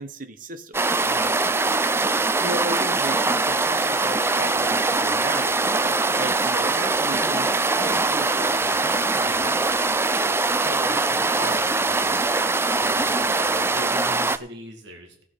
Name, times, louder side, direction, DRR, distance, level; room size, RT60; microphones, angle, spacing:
voice 1, 0.0-1.1 2.2-8.8, right 2 dB, 50° right, 8 dB, 1.1 m, -35 dB
sound 1, 0.7-14.4, right 3 dB, 15° right, 0.4 m, -22 dB
voice 2, 1.0-1.5 9.1-9.5 10.5-12.2 12.8-15.2, equal, 80° right, 2 dB, 2.4 m, -41 dB
18.0 x 7.7 x 4.0 m, 0.66 s
head